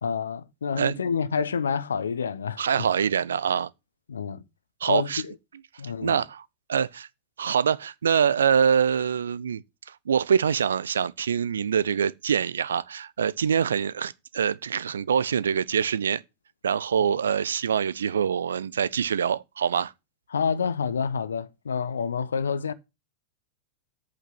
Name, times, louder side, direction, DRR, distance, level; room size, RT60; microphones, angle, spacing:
voice 1, 0.0-2.6 4.1-4.4 4.9-5.3 5.8-6.2 20.3-22.7, left 6 dB, 70° left, 1.0 m, -28 dB
voice 2, 2.6-3.7 4.8-5.2 6.0-7.1 7.4-16.2 16.6-19.9, right 7 dB, 65° right, 0.5 m, -25 dB
8.7 x 7.9 x 6.0 m
figure-of-eight pair, 90°, 0 cm